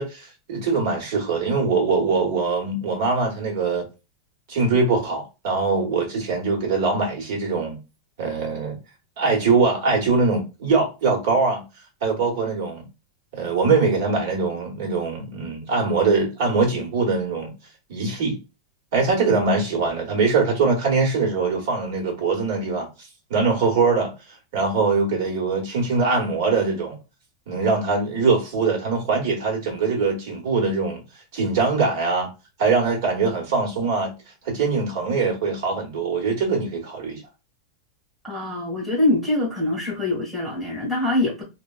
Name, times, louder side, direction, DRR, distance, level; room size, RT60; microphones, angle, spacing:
voice 1, 0.0-3.9 4.5-7.8 8.2-8.8 9.2-11.6 12.0-12.8 13.3-17.5 17.9-18.4 18.9-22.9 23.3-24.1 24.5-27.0 27.5-31.0 31.3-32.3 32.6-34.1 34.4-37.2, right 4 dB, 55° right, 1.2 m, -22 dB
voice 2, 38.2-41.4, left 2 dB, 5° right, 1.3 m, -24 dB
3.3 x 2.2 x 2.3 m
supercardioid pair, 170°, 2 cm